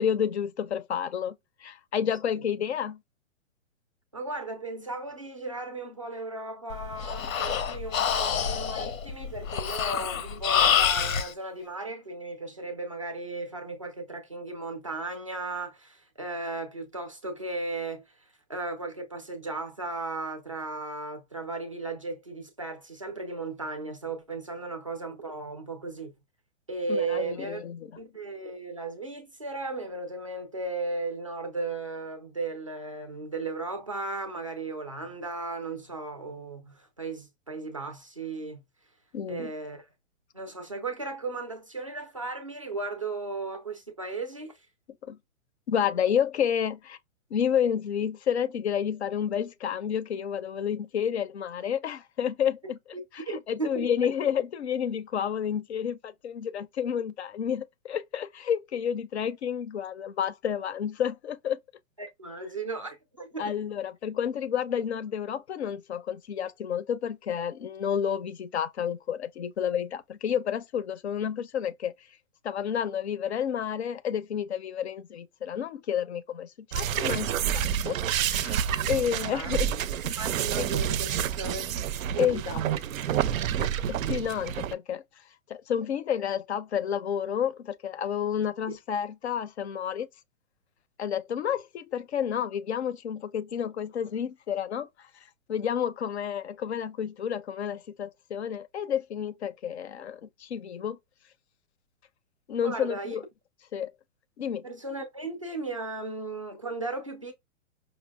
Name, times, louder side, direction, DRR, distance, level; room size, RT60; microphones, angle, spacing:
voice 1, 0.0-3.0 26.9-27.9 39.1-39.5 45.0-45.2 45.7-47.0 47.3-52.8 53.1-61.6 63.4-71.9 72.4-78.6 78.9-79.7 80.6-80.7 82.2-82.7 83.2-85.0 85.5-90.1 91.0-95.1 95.5-101.0 102.5-103.2 103.7-103.9 104.4-104.7, left 8 dB, 55° left, 0.5 m, -30 dB
voice 2, 4.1-18.2 18.5-26.1 26.7-38.6 39.3-39.8 40.3-44.6 52.9-53.9 62.0-63.6 79.3-79.5 80.0-82.8 88.7-88.8 102.6-103.2 104.6-107.3, right 3 dB, 25° right, 0.4 m, -36 dB
Breathing, 6.7-11.3, left 8 dB, 85° left, 0.7 m, -27 dB
sound 1, 76.7-84.8, right 10 dB, 85° right, 0.5 m, -29 dB
5.3 x 2.0 x 2.2 m
hypercardioid pair, 175°, 40 cm